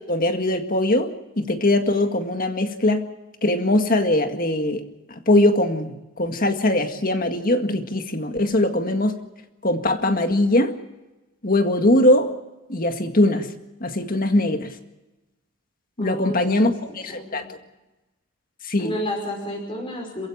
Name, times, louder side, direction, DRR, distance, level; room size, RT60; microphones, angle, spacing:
voice 1, 0.0-3.0 3.4-4.8 5.1-9.2 9.6-10.7 11.4-12.3 12.7-13.5 13.8-14.8 16.0-17.5 18.6-18.9, left 1 dB, 40° left, 6 dB, 1.9 m, -21 dB
voice 2, 16.0-16.8 17.1-17.4 18.8-20.3, left 1 dB, 25° left, -1 dB, 5.5 m, -31 dB
27.5 x 15.5 x 7.4 m, 1.1 s
head